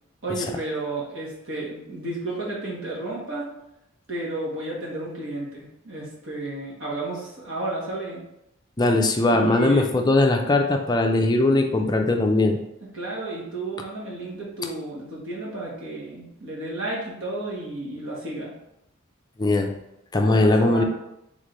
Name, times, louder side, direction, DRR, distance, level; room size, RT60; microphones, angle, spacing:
voice 1, 0.2-3.5 4.1-8.3 9.3-9.9 12.9-18.5 20.2-20.8, right 2 dB, 65° right, -4 dB, 1.4 m, -32 dB
voice 2, 8.8-12.6 19.4-19.8 20.1-20.8, left 2 dB, 20° left, 3 dB, 0.4 m, -20 dB
3.7 x 3.2 x 3.8 m, 0.85 s
head